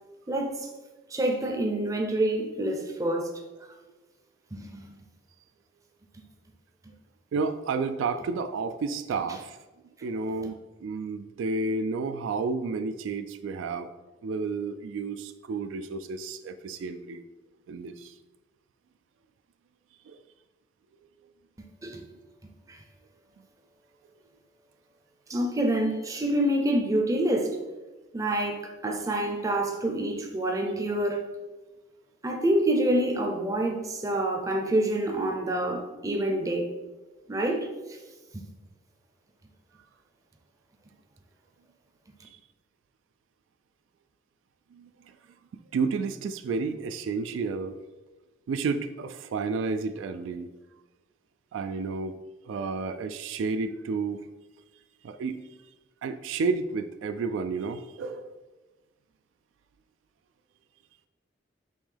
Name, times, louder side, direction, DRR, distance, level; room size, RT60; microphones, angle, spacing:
voice 1, 0.3-0.7 1.1-3.3 4.5-4.9 21.6-22.0 22.7-22.8 25.3-27.6 28.1-31.2 32.2-36.7 37.3-38.0 38.3-38.4, right 1 dB, 15° right, 0.5 m, -27 dB
voice 2, 7.3-9.6 10.0-13.9 14.2-17.2 17.7-18.1 20.1-20.2 44.7-45.2 45.5-47.8 48.5-50.5 51.5-52.1 52.4-54.3 55.0-55.4 56.0-58.4, right 4 dB, 85° right, 0.3 m, -31 dB
5.3 x 3.0 x 3.3 m
head